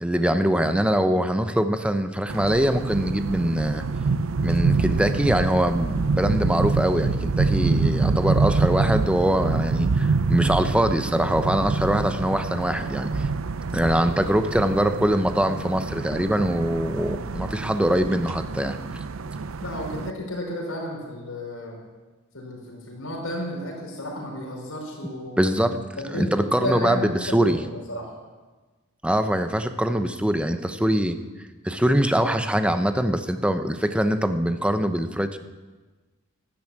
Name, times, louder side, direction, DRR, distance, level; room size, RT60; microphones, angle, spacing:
voice 1, 0.0-3.8 4.4-13.3 13.7-18.8 25.4-25.8 26.1-27.6 29.0-31.2 31.6-35.4, right 1 dB, 5° right, 9 dB, 0.8 m, -23 dB
sound 1, 2.3-20.1, right 4 dB, 70° right, 0.6 m, -26 dB
voice 2, 19.6-21.7 22.3-25.4 26.0-27.5 27.9-28.0, equal, 90° left, -1 dB, 5.2 m, -32 dB
12.5 x 12.5 x 8.8 m, 1.3 s
head